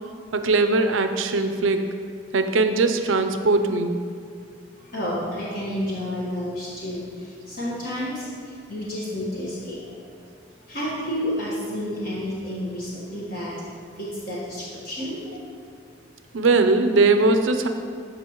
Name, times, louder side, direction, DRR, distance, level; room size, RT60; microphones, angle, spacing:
voice 1, 0.3-1.9 2.3-3.9 16.3-17.7, right 3 dB, 80° right, 7 dB, 0.6 m, -20 dB
voice 2, 4.8-10.1 10.7-13.6 13.9-15.4 16.5-16.7, equal, 45° left, -7 dB, 1.4 m, -31 dB
13.5 x 5.2 x 3.1 m, 2.2 s
head